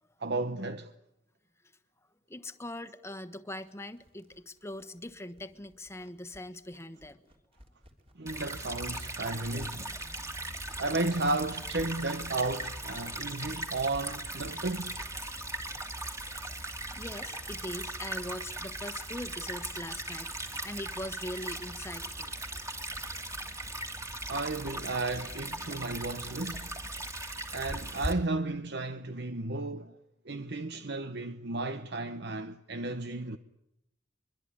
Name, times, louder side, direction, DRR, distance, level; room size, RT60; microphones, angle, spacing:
voice 1, 0.2-0.9 8.2-9.9 10.8-15.0 24.3-26.8 27.5-30.0 30.2-33.4, right 2 dB, 60° right, 1.0 m, -33 dB
voice 2, 2.3-7.2 15.2-15.3 16.1-16.2 16.9-22.7, left 1 dB, 15° left, 1.3 m, -42 dB
sound 1, 3.6-9.2 9.6-9.7 10.1-10.2 10.7-10.8 11.8-11.9 12.8-13.0 13.3-13.4 13.9-14.1 14.5-14.6 15.0-15.1 15.4-15.5, equal, 30° right, 3.5 m, -54 dB
Stream / Trickle dribble, 8.3-28.1, right 1 dB, 15° right, 2.7 m, -39 dB
23.5 x 23.5 x 10.0 m
head